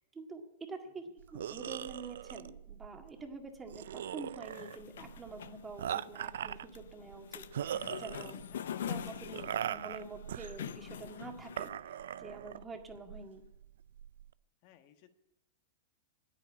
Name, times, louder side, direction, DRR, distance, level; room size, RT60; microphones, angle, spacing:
voice 1, 0.0-8.4 8.8-13.4, right 3 dB, 15° right, 4 dB, 1.8 m, -47 dB
sound 1, 1.2-14.3, right 10 dB, 75° right, 0.4 m, -41 dB
sound 2, 4.4-11.7, left 9 dB, 75° left, 0.6 m, -44 dB
voice 2, 8.5-9.0 9.5-9.6 14.6-15.1, left 10 dB, 50° left, 9 dB, 1.3 m, -63 dB
9.7 x 8.9 x 9.6 m, 0.90 s
hypercardioid pair, 120°, 0 cm